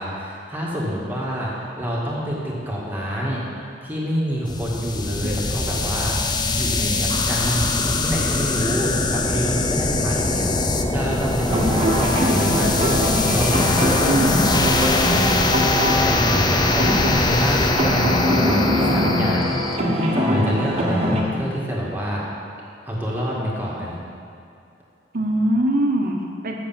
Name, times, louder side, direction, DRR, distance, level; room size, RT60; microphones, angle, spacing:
voice 1, 0.0-3.4 3.8-6.2 6.6-13.0 13.3-14.2 14.4-14.7 15.0-15.4 15.9-19.5 19.9-22.2 22.9-24.0, equal, 10° right, -5 dB, 1.8 m, -27 dB
sound 1, 4.5-19.8, left 2 dB, 25° left, 0.5 m, -22 dB
sound 2, 11.4-21.2, equal, 35° right, 1.3 m, -22 dB
voice 2, 14.1-14.5 25.1-26.6, right 1 dB, 55° right, 1 dB, 1.1 m, -22 dB
7.8 x 6.5 x 7.4 m, 2.4 s
head